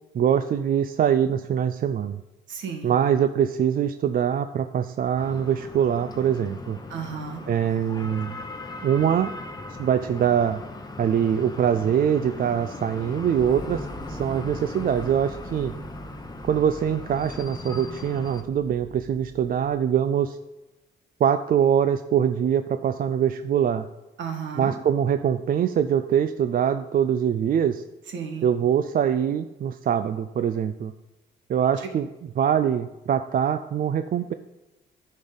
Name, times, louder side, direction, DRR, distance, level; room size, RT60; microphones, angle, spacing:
voice 1, 0.1-2.2 2.8-6.8 7.5-8.4 8.8-9.3 9.8-10.6 11.0-15.7 16.4-20.4 21.2-23.9 24.6-27.8 28.4-30.9 31.5-32.1 32.4-34.3, right 8 dB, 45° right, 10 dB, 0.4 m, -23 dB
voice 2, 2.5-2.9 6.9-7.4 24.2-24.8 28.1-28.5, right 6 dB, 70° right, 3 dB, 1.6 m, -33 dB
sound 1, 5.2-18.4, left 2 dB, 20° left, 0.9 m, -39 dB
sound 2, 13.4-20.1, right 1 dB, 10° right, 1.4 m, -42 dB
10.5 x 5.4 x 4.0 m, 1.1 s
cardioid pair, 90°, 20 cm